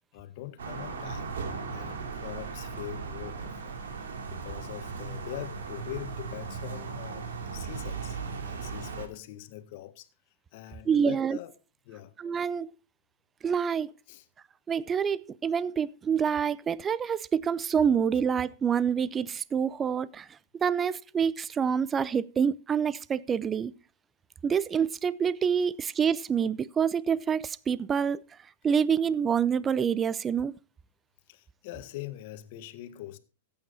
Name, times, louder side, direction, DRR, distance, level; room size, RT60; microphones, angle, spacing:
voice 1, 0.1-1.3 1.7-3.8 4.3-7.3 7.5-10.1 10.5-11.5 11.8-12.1 14.1-14.2 31.3-33.2, left 14 dB, 55° left, 1.6 m, -42 dB
sound 1, 0.6-9.1, right 5 dB, 80° right, 2.8 m, -37 dB
voice 2, 10.9-11.4 12.2-12.7 13.4-13.9 14.7-20.3 20.5-23.7 24.4-28.2 28.6-30.5, right 7 dB, 20° right, 0.6 m, -27 dB
14.0 x 8.8 x 4.2 m
hypercardioid pair, 120°, 0 cm